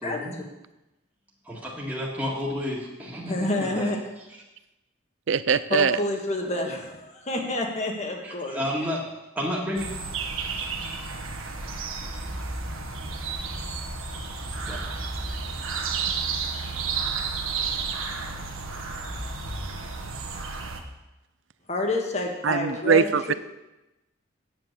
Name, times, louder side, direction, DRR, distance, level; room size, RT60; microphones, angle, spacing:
voice 1, 0.0-0.4 1.4-4.0 8.2-9.0 9.3-9.9 14.6-14.8, left 1 dB, 10° right, -6 dB, 1.9 m, -31 dB
voice 2, 3.3-4.0 5.7-8.6 21.7-23.3, left 2 dB, 35° left, 2 dB, 1.6 m, -28 dB
voice 3, 5.3-6.0 22.4-23.3, right 6 dB, 65° right, 14 dB, 0.5 m, -22 dB
sound 1, 9.8-20.8, right 4 dB, 85° right, 1.4 m, -32 dB
9.4 x 7.8 x 6.7 m, 0.99 s
head